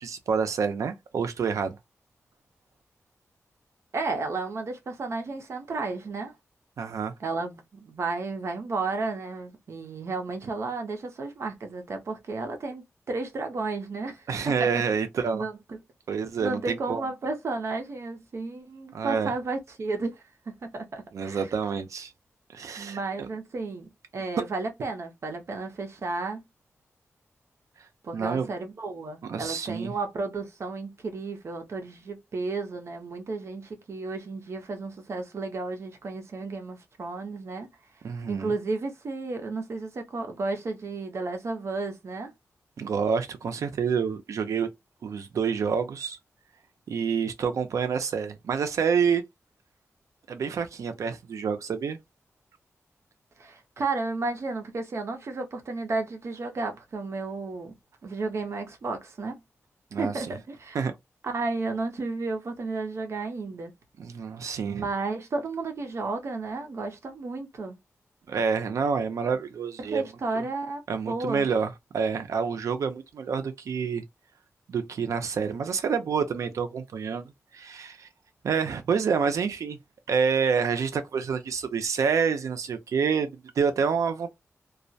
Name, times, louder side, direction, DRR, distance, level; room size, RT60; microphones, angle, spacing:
voice 1, 0.0-1.8 6.8-7.1 14.3-15.4 16.1-17.0 18.9-19.3 21.1-22.1 22.5-23.3 28.1-28.5 29.2-29.9 38.0-38.5 42.8-44.7 45.0-46.2 46.9-49.2 50.3-52.0 59.9-60.4 60.7-60.9 64.0-64.9 68.3-70.1 70.9-74.0 74.7-78.1 78.4-79.8 80.1-84.3, right 6 dB, 90° right, 0.5 m, -28 dB
voice 2, 3.9-6.3 7.2-14.3 14.6-14.8 15.3-15.8 16.4-20.1 20.5-21.5 22.8-26.4 28.0-37.7 38.3-42.3 53.4-57.7 58.0-59.4 60.0-60.8 61.2-63.7 64.6-67.8 69.8-71.5, right 3 dB, 60° right, 0.7 m, -33 dB
2.3 x 2.1 x 2.6 m
wide cardioid pair, 135°, 5 cm